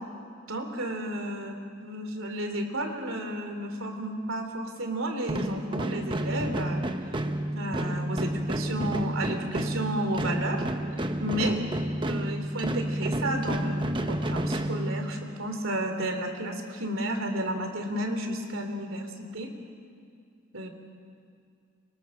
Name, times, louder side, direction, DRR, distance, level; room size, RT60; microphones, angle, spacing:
voice 1, 0.5-7.2 7.5-10.6 11.2-11.6 12.0-19.5 20.5-20.7, right 1 dB, 85° right, 5 dB, 3.2 m, -32 dB
sound 1, 5.2-15.4, right 1 dB, 25° right, 1.0 m, -30 dB
29.5 x 25.0 x 6.5 m, 2.3 s
head